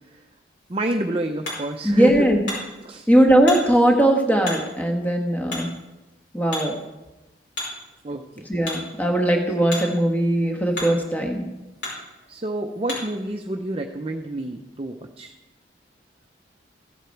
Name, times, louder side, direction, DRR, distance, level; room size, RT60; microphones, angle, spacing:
Hammer, 0.6-13.2, left 2 dB, 65° left, 5.1 m, -38 dB
voice 1, 0.7-2.3 2.8-3.1 8.0-8.5 10.5-10.6 12.3-15.3, right 1 dB, 30° right, 3 dB, 0.6 m, -28 dB
voice 2, 1.8-2.4 3.1-5.7 6.3-6.8 8.5-11.4, right 1 dB, 10° left, 2 dB, 1.3 m, -19 dB
16.0 x 8.0 x 4.6 m, 1.0 s
head